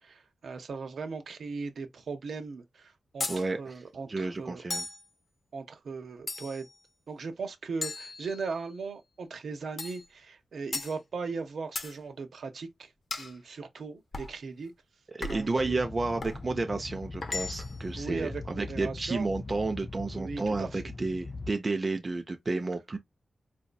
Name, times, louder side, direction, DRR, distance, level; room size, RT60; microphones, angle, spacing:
voice 1, 0.0-3.3 3.6-4.6 5.5-6.7 7.1-12.9 13.2-14.7 15.3-15.8 18.0-19.3 20.1-20.8, right 4 dB, 75° right, 0.8 m, -38 dB
sound 1, 3.2-3.5 4.7-5.1 6.3-6.7 7.8-8.7 9.8-10.1 10.7-11.0 11.8-12.0 13.1-13.4 14.1-14.4 15.2-15.6 16.2-16.4 17.2-17.8, left 3 dB, 50° left, 0.8 m, -36 dB
voice 2, 3.3-3.8 4.1-4.9 15.1-23.0, right 3 dB, 35° right, 0.5 m, -31 dB
sound 2, 15.6-21.5, left 3 dB, 30° left, 0.3 m, -41 dB
4.2 x 2.7 x 2.3 m
wide cardioid pair, 100°, 0 cm